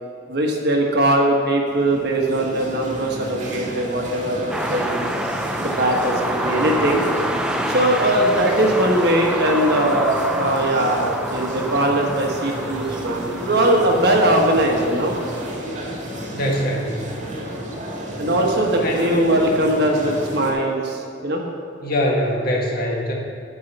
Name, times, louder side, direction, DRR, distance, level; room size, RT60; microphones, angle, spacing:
voice 1, 0.3-5.1 5.6-7.1 7.7-15.2 18.2-21.4, right 1 dB, 55° right, 1 dB, 1.3 m, -20 dB
sound 1, 1.7-20.5, equal, 40° right, 1.6 m, -32 dB
sound 2, 4.5-15.6, right 1 dB, 5° right, 0.4 m, -28 dB
voice 2, 16.3-17.0 18.8-19.4 21.8-23.1, left 1 dB, 50° left, -1 dB, 1.5 m, -23 dB
9.1 x 4.8 x 6.8 m, 2.6 s
head